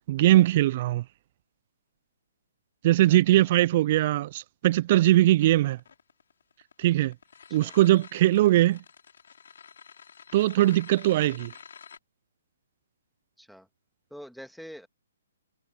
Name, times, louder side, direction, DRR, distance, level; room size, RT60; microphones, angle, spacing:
voice 1, 0.1-1.0 2.8-5.8 6.8-7.1 7.5-8.8 10.3-11.5, right 15 dB, 45° right, 0.4 m, -21 dB
voice 2, 3.1-3.6 7.5-7.8 13.4-13.7 14.1-14.9, equal, ahead, 2.3 m, -46 dB
sound 1, 5.4-12.0, left 7 dB, 65° left, 6.3 m, -49 dB
figure-of-eight pair, 130°, 0 cm